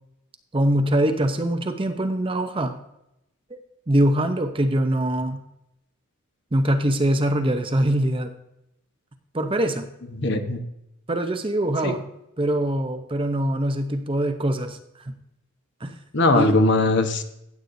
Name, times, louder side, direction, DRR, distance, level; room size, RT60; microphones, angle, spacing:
voice 1, 0.5-2.7 3.5-3.6 3.9-5.4 6.5-8.3 9.3-9.9 11.1-12.0 12.4-14.8 15.8-15.9 16.3-16.5, right 1 dB, 25° right, 7 dB, 0.6 m, -23 dB
voice 2, 10.1-10.6 11.8-11.9 16.1-17.2, left 2 dB, 50° left, 6 dB, 1.0 m, -20 dB
15.5 x 8.4 x 2.6 m, 0.82 s
head